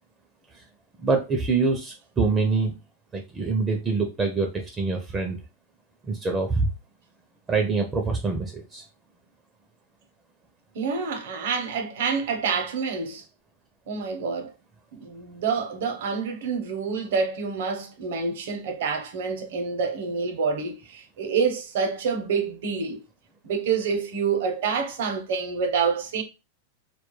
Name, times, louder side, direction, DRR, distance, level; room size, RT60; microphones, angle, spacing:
voice 1, 1.0-2.8 3.1-5.4 6.1-6.7 7.5-8.8, right 4 dB, 15° right, 0.4 m, -25 dB
voice 2, 10.7-13.2 13.9-14.5 14.9-23.0 23.4-26.2, right 5 dB, 70° right, 0.7 m, -27 dB
2.2 x 2.1 x 3.0 m
supercardioid pair, 145°, 0 cm